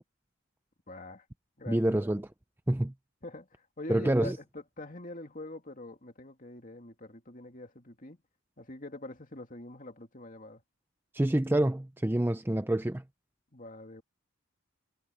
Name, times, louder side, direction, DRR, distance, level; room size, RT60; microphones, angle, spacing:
voice 1, 0.9-1.3 1.6-1.9 3.2-8.2 8.6-10.6 13.5-14.0, left 1 dB, 35° left, 2.5 m, -44 dB
voice 2, 1.7-2.3 2.7-2.9 3.9-4.4 11.1-13.0, right 1 dB, 10° right, 0.4 m, -27 dB
head